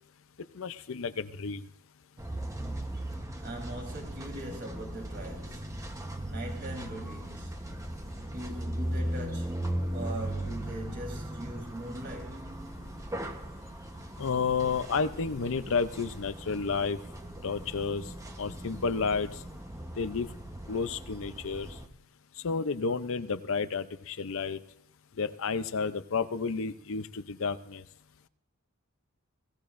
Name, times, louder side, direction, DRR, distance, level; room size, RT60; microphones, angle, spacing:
voice 1, 0.5-1.6 14.2-17.0 17.4-18.1 18.4-19.4 20.0-20.3 20.7-21.7 22.4-24.6 25.2-27.8, left 5 dB, 65° left, 0.6 m, -31 dB
sound 1, 2.2-21.9, right 1 dB, 15° right, 1.0 m, -38 dB
voice 2, 3.4-5.9 6.2-7.9 8.2-12.6, right 1 dB, 55° right, 3.8 m, -41 dB
22.5 x 16.0 x 2.6 m
head